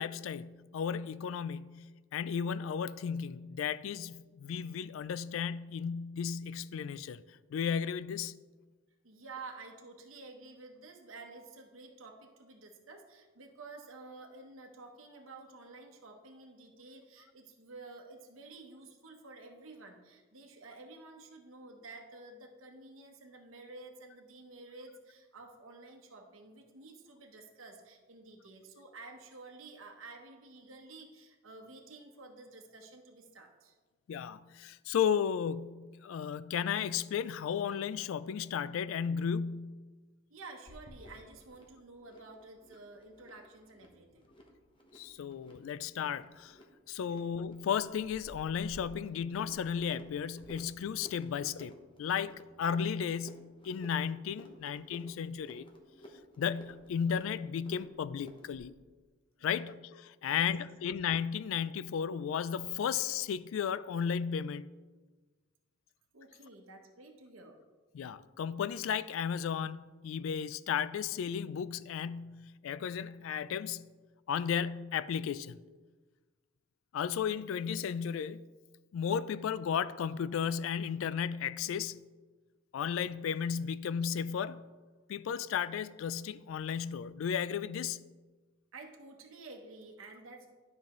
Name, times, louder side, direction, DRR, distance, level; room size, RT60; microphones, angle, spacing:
voice 1, 0.0-7.2 7.5-8.3 34.1-39.7 44.9-46.6 46.9-55.7 56.4-58.8 59.4-64.7 67.9-73.9 74.3-75.6 76.9-78.5 78.9-82.0 82.7-84.6 85.1-88.0, left 7 dB, 70° left, 0.3 m, -34 dB
voice 2, 9.0-33.7 40.3-44.3 47.0-47.2 59.4-59.8 60.3-60.7 66.1-67.6 88.7-90.5, right 3 dB, 75° right, 1.0 m, -51 dB
sound 1, 40.7-58.7, equal, 25° left, 1.0 m, -55 dB
11.5 x 5.6 x 3.1 m
head